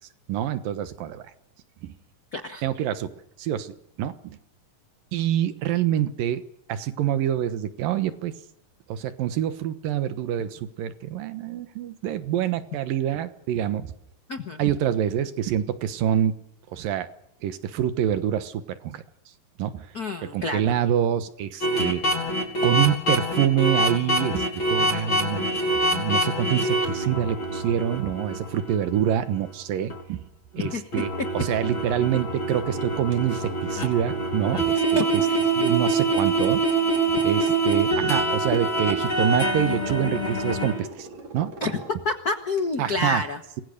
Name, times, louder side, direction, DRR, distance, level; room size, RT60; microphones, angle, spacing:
voice 1, 0.3-1.3 1.8-1.9 2.6-3.1 3.4-4.4 5.1-6.4 6.7-8.4 8.9-13.9 14.6-16.3 16.7-17.1 17.4-19.0 19.6-19.9 20.3-22.0 22.6-30.2 30.5-35.3 35.6-36.6 37.2-41.1 41.3-41.5 42.8-43.2, right 10 dB, 85° right, 11 dB, 3.0 m, -26 dB
voice 2, 2.3-2.6 14.3-14.6 19.9-20.7 30.7-31.3 34.9-35.4 41.6-41.7 42.0-43.4, left 3 dB, 65° left, 7 dB, 0.9 m, -28 dB
sound 1, 21.6-29.5 29.9-30.0 30.6-40.9, right 2 dB, 35° left, 5.2 m, -25 dB
sound 2, 32.7-42.8, right 3 dB, 55° right, 5.2 m, -44 dB
27.5 x 21.0 x 6.7 m, 0.79 s
omnidirectional pair, 3.9 m